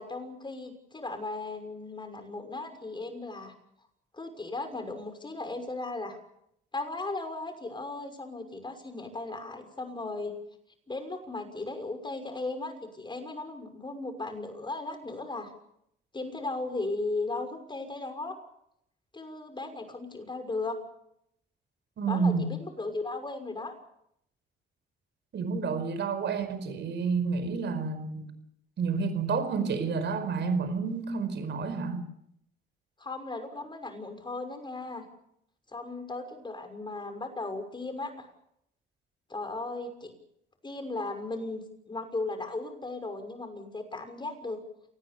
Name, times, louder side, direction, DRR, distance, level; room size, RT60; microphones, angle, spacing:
voice 1, 0.0-3.5 4.1-6.2 6.7-10.3 10.9-15.5 16.1-18.4 19.1-20.8 22.1-23.8 33.0-35.0 35.7-38.3 39.3-40.1 40.6-44.6, left 2 dB, 25° left, 6.1 m, -36 dB
voice 2, 22.0-22.5 25.3-28.3 28.8-32.1, right 5 dB, 65° right, 5.1 m, -29 dB
27.5 x 19.5 x 7.0 m
cardioid pair, 90°, 20 cm